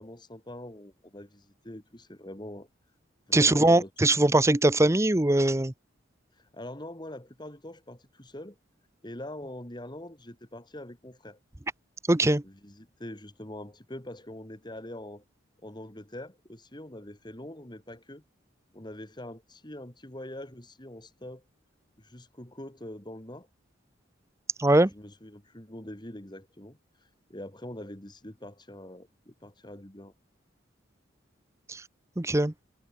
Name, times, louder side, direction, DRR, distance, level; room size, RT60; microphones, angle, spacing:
voice 1, 0.0-2.7 3.3-3.9 6.4-8.6 9.0-11.4 12.4-15.2 15.6-18.2 18.7-21.4 22.0-23.5 24.9-30.1, left 1 dB, 25° left, 2.7 m, -43 dB
voice 2, 3.3-5.7 12.1-12.4 24.6-24.9 31.7-31.8 32.2-32.5, right 2 dB, 15° right, 0.8 m, -21 dB
head